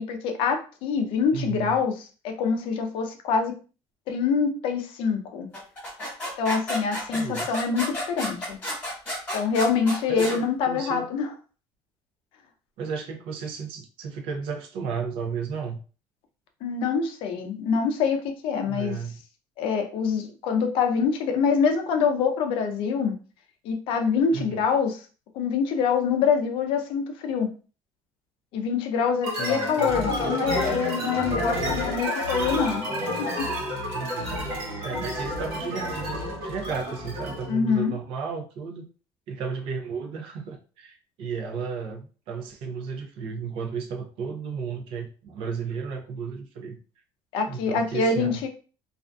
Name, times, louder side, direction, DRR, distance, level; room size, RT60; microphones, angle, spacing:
voice 1, 0.0-1.9 2.2-3.6 4.1-5.5 6.4-8.6 9.3-11.3 16.6-19.0 19.6-23.2 23.6-25.0 25.3-27.5 28.5-32.8 33.2-33.5 37.5-37.9 47.3-48.5, left 5 dB, 60° left, 5 dB, 0.4 m, -25 dB
voice 2, 1.3-1.8 7.1-7.6 10.1-11.1 12.8-15.8 18.7-19.2 24.3-24.6 29.4-30.1 33.9-38.9 39.3-46.8 47.5-48.4, right 5 dB, 65° right, 3 dB, 0.5 m, -34 dB
sound 1, 5.5-10.4, left 1 dB, 15° left, 1.2 m, -32 dB
sound 2, 29.2-37.5, equal, 85° right, 1.0 m, -29 dB
2.5 x 2.4 x 2.2 m, 0.37 s
cardioid pair, 175°, 10 cm